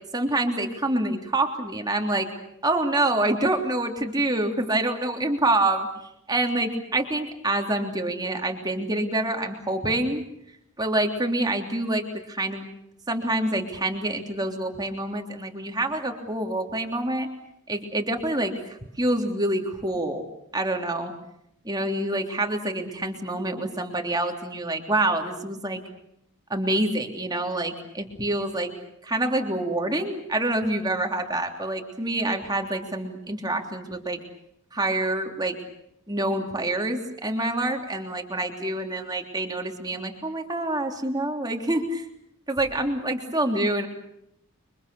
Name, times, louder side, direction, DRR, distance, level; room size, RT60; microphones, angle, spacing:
voice 1, 0.1-2.3 2.6-5.9 6.3-10.2 10.8-12.7 13.1-17.3 17.7-18.5 19.0-20.2 20.5-21.1 21.6-25.8 26.5-28.7 29.0-34.2 34.7-35.6 36.1-42.0 42.5-43.9, right 1 dB, 20° right, 3 dB, 3.3 m, -26 dB
29.5 x 24.5 x 7.0 m, 0.79 s
head